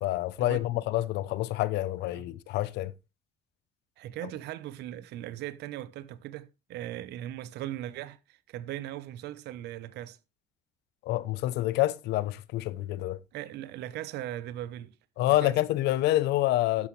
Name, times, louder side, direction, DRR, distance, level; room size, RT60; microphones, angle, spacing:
voice 1, 0.0-2.9 11.0-13.2 15.2-16.9, left 15 dB, 85° left, 0.9 m, -27 dB
voice 2, 4.0-10.2 13.3-14.9 15.2-15.5, right 13 dB, 80° right, 1.0 m, -39 dB
12.5 x 9.9 x 3.3 m
cardioid pair, 110°, 17 cm